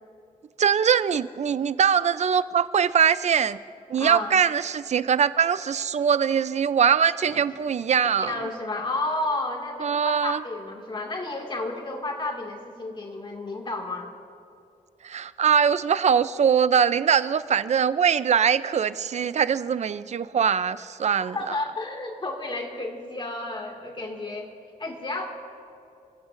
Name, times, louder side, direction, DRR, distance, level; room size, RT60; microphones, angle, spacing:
voice 1, 0.6-3.6 3.9-8.4 9.8-10.4 15.0-21.6, right 7 dB, 55° right, 15 dB, 0.5 m, -22 dB
voice 2, 4.0-4.3 7.3-7.4 8.3-14.1 21.3-24.5 24.8-25.3, left 2 dB, 35° left, 1 dB, 2.1 m, -31 dB
29.0 x 15.5 x 2.6 m, 2.5 s
wide cardioid pair, 115°, 14 cm